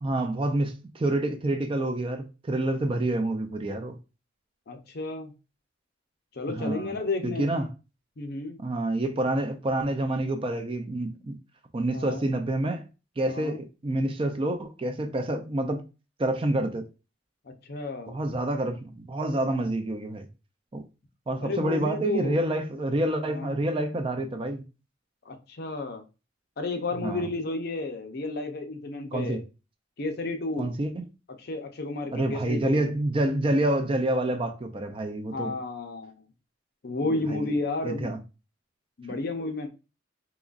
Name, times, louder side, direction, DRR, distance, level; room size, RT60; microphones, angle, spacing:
voice 1, 0.0-4.0 6.5-6.9 7.2-7.7 8.6-11.4 11.7-12.9 13.2-15.8 16.2-16.8 18.1-20.3 20.7-20.8 21.3-24.6 27.0-27.3 29.1-29.4 30.6-31.1 32.1-35.5 37.3-37.5 37.8-38.2, right 1 dB, 30° right, 0.4 m, -28 dB
voice 2, 4.7-5.3 6.3-7.6 8.2-8.6 11.9-12.3 13.2-13.6 17.4-18.2 21.4-22.4 23.2-23.6 25.2-26.0 26.6-29.4 30.0-30.7 31.4-32.9 35.3-36.1 36.8-38.1 39.0-39.7, left 2 dB, 55° left, 0.6 m, -32 dB
3.8 x 2.9 x 2.4 m
head